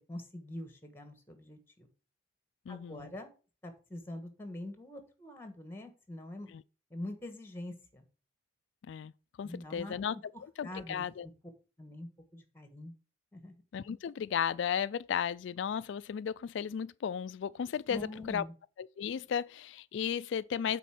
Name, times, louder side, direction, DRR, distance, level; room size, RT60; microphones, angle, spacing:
voice 1, 0.1-1.9 2.7-3.3 3.6-6.5 6.9-8.0 9.4-10.0 10.6-11.3 11.8-12.9 13.3-13.6 17.9-18.5, left 1 dB, 10° left, 1.3 m, -44 dB
voice 2, 2.7-3.1 8.9-9.1 9.4-10.2 10.6-11.3 13.7-18.4 18.8-20.8, left 8 dB, 70° left, 0.3 m, -34 dB
8.3 x 4.3 x 5.8 m
head